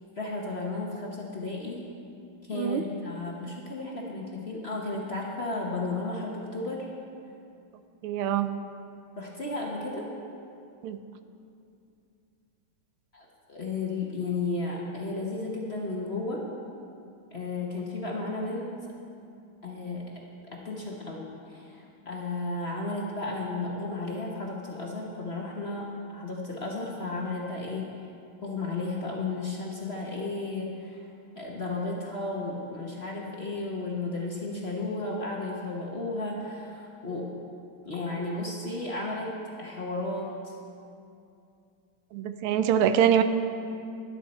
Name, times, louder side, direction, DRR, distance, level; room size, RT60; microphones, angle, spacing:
voice 1, 0.2-1.8 2.5-6.9 9.2-10.1 13.1-16.4 17.3-18.7 19.6-20.2 20.5-27.9 28.4-31.1 31.3-37.3 37.8-39.3 39.6-40.5, left 2 dB, 40° left, -2 dB, 1.0 m, -33 dB
voice 2, 2.5-2.8 8.0-8.5 10.8-11.0 42.1-43.2, right 9 dB, 90° right, 10 dB, 1.5 m, -24 dB
12.0 x 11.5 x 4.2 m, 2.5 s
omnidirectional pair, 2.3 m